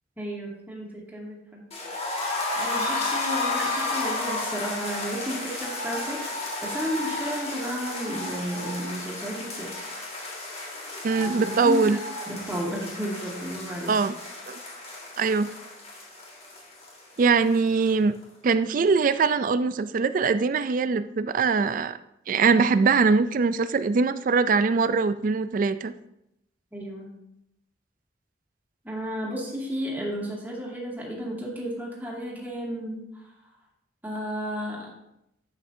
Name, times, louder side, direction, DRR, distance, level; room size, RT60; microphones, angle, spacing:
voice 1, 0.2-1.6 2.6-9.9 11.2-13.9 26.7-27.1 28.8-33.1 34.0-34.9, equal, 10° right, -4 dB, 2.2 m, -33 dB
sound 1, 1.7-17.6 17.8-17.9 18.2-18.3, left 2 dB, 35° left, 1.9 m, -32 dB
voice 2, 11.0-12.0 13.9-14.1 14.5-14.6 15.2-15.5 17.2-18.2 18.4-22.0 22.3-25.9, right 4 dB, 45° right, 13 dB, 0.3 m, -22 dB
10.5 x 8.2 x 2.7 m, 0.81 s
head